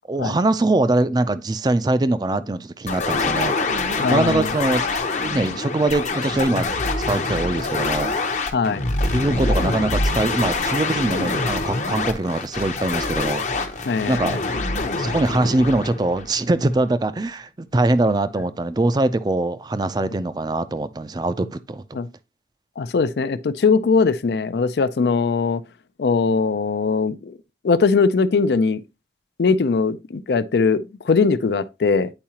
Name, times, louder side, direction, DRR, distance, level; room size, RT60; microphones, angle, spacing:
voice 1, 0.1-3.5 4.1-4.8 5.2-8.4 9.1-13.4 14.1-14.4 15.0-22.0, right 2 dB, 25° right, 0.4 m, -22 dB
sound 1, 2.9-16.7, left 3 dB, 45° left, 0.7 m, -25 dB
voice 2, 4.0-4.5 8.5-8.8 13.8-14.4 21.9-22.1 22.8-25.6 26.0-27.4 27.6-28.8 29.4-32.1, left 4 dB, 70° left, 0.4 m, -20 dB
8.8 x 4.7 x 2.8 m
head